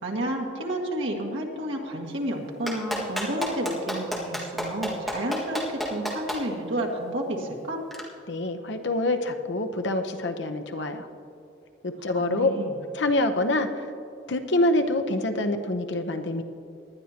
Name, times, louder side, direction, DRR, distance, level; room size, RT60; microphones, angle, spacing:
voice 1, 0.0-7.8 12.1-12.7, right 1 dB, 80° right, -1 dB, 1.9 m, -31 dB
Clapping, 2.7-6.4 7.9-8.0, equal, ahead, 1.8 m, -29 dB
voice 2, 8.3-11.1 11.8-12.5 12.9-13.9 14.3-16.4, left 2 dB, 65° left, 6 dB, 0.9 m, -26 dB
19.0 x 11.0 x 2.9 m, 2.6 s
head